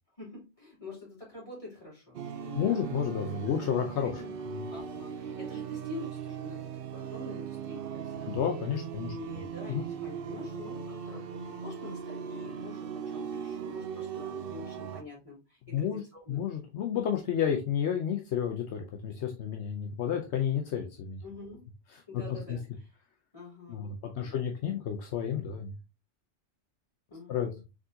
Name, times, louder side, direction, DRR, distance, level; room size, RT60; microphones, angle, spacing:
voice 1, 0.2-3.0 4.0-4.3 4.7-8.5 9.0-16.5 21.2-21.6 22.1-22.9 23.3-24.3 27.1-27.6, left 3 dB, 30° left, -5 dB, 3.1 m, -46 dB
sound 1, 2.1-15.0, right 7 dB, 60° right, 0.7 m, -39 dB
voice 2, 2.5-4.2 4.6-4.7 8.3-9.1 9.7-9.9 15.7-16.0 16.3-21.2 21.9-22.0 22.5-22.6 23.7-23.9 24.2-25.8 27.3-27.5, left 8 dB, 75° left, 3 dB, 1.0 m, -31 dB
5.0 x 3.7 x 2.7 m, 0.28 s
omnidirectional pair, 1.2 m